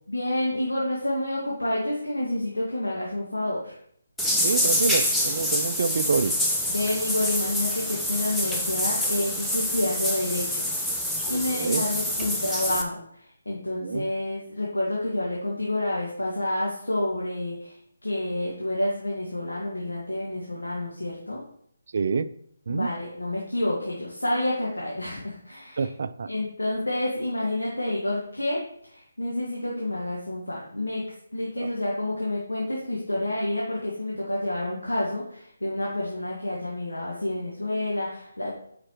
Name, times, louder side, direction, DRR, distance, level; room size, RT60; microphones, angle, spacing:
voice 1, 0.1-3.7 6.7-10.6 10.9-17.8 18.0-21.4 22.7-25.9 26.3-31.0 31.3-38.5, left 1 dB, 80° left, -4 dB, 1.7 m, -29 dB
sound 1, 4.2-12.8, equal, 5° left, 0.6 m, -26 dB
voice 2, 4.4-6.3 11.5-11.8 13.8-14.1 21.9-22.3 22.7-22.9 25.8-26.3 31.6-31.7, right 5 dB, 50° right, 14 dB, 0.4 m, -27 dB
8.7 x 5.1 x 3.0 m, 0.68 s
figure-of-eight pair, 150°, 0 cm